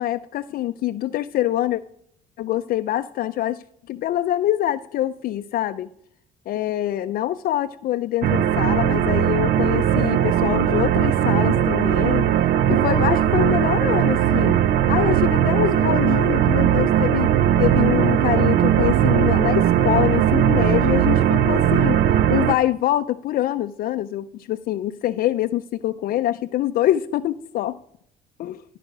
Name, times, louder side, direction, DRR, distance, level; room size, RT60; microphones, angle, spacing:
voice 1, 0.0-1.8 2.4-5.9 6.5-12.3 12.7-14.6 14.9-17.3 17.6-22.0 22.3-27.8 28.4-28.6, left 13 dB, 60° left, 10 dB, 0.4 m, -24 dB
sound 1, 8.2-22.6, right 10 dB, 65° right, 0.5 m, -19 dB
12.5 x 5.0 x 6.1 m, 0.68 s
cardioid pair, 110°, 17 cm